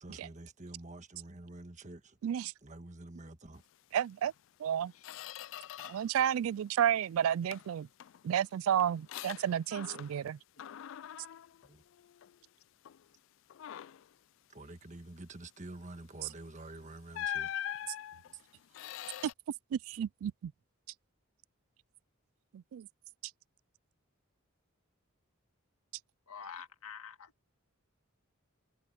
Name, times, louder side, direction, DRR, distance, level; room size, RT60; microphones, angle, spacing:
voice 1, 0.0-2.2 2.6-3.6 11.6-11.8 14.5-17.7 18.3-18.8, right 2 dB, 35° right, 1.4 m, -48 dB
voice 2, 3.9-4.3 4.6-4.9 5.9-7.9 8.2-10.4 19.7-20.5 22.7-22.9, right 9 dB, 75° right, 0.3 m, -31 dB
Squeak, 4.2-4.4 4.7-6.2 6.5-7.1 7.5-10.3 10.6-12.4 12.8-13.1 13.5-14.1 16.2-16.4 17.1-19.3, left 11 dB, 60° left, 0.3 m, -43 dB
voice 3, 26.3-27.3, left 6 dB, 90° left, 2.0 m, -47 dB
head